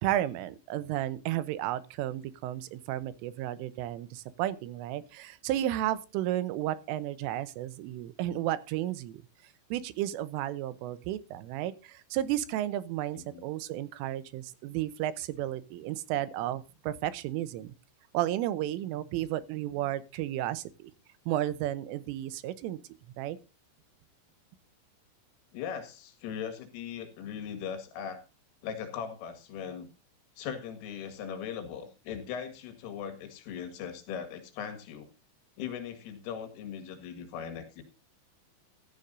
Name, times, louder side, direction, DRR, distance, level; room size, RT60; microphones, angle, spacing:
voice 1, 0.0-9.2 9.7-17.7 18.1-20.9 21.3-22.8 23.2-23.4, right 13 dB, 90° right, 3.4 m, -33 dB
voice 2, 25.5-28.2 28.6-29.9 30.4-35.1 35.6-37.8, left 8 dB, 85° left, 4.5 m, -39 dB
14.5 x 14.0 x 2.7 m
omnidirectional pair, 5.7 m